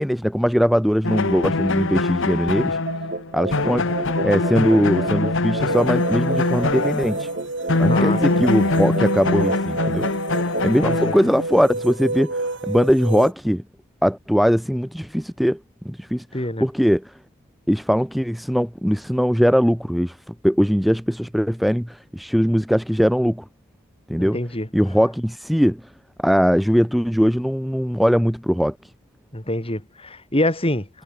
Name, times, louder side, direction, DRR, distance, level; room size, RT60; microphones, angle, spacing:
voice 1, 0.0-2.8 3.3-7.3 7.8-10.1 10.6-13.6 14.0-15.6 15.8-16.2 16.6-17.1 17.7-20.2 20.4-23.4 24.1-24.4 24.7-25.8 26.2-28.8, equal, ahead, 1.0 m, -20 dB
sound 1, 1.0-7.4 7.7-11.7, left 3 dB, 60° left, 1.3 m, -23 dB
sound 2, 2.9-11.1, right 2 dB, 40° right, 4.7 m, -31 dB
sound 3, 5.6-13.3, right 2 dB, 55° right, 4.0 m, -30 dB
voice 2, 7.9-8.5 10.6-11.1 16.3-16.6 24.2-24.7 29.3-30.9, left 1 dB, 25° left, 4.5 m, -26 dB
head